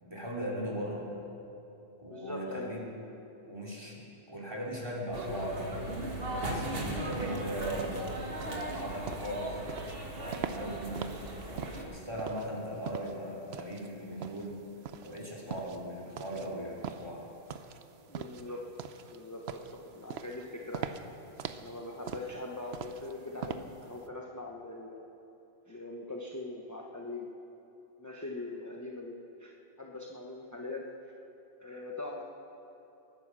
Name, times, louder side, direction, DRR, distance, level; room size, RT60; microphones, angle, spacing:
voice 1, 0.0-1.1 2.0-2.9 3.5-6.0 6.3-8.4 8.7-9.6 10.2-11.2 11.5-14.6 15.0-17.3, equal, 25° right, -3 dB, 2.8 m, -39 dB
voice 2, 2.1-2.9 18.1-18.7 19.1-21.0 21.6-25.0 25.7-27.3 28.0-30.9 31.6-32.2, left 2 dB, 20° left, -1 dB, 1.0 m, -42 dB
sound 1, 5.1-11.8, right 1 dB, 65° right, 1.8 m, -37 dB
sound 2, 7.1-24.0, right 7 dB, 80° right, 1.0 m, -43 dB
22.5 x 9.8 x 6.2 m, 3.0 s
omnidirectional pair, 1.1 m